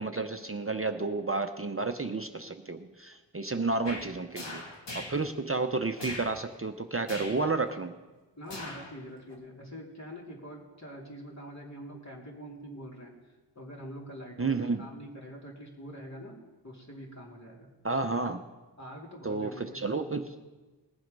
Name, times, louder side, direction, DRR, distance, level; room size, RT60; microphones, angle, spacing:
voice 1, 0.0-4.6 4.9-8.0 14.4-14.8 17.8-18.4 19.2-20.3, right 3 dB, 30° right, 7 dB, 0.6 m, -31 dB
sound 1, 3.9-4.1 4.3-5.2 6.0-6.3 7.1-7.4 8.5-8.9 9.3-9.4, left 1 dB, 75° left, 2.4 m, -40 dB
voice 2, 8.4-17.7 18.8-20.2, equal, 40° left, -2 dB, 3.0 m, -45 dB
19.0 x 7.7 x 5.3 m, 1.2 s
wide cardioid pair, 65°, 43 cm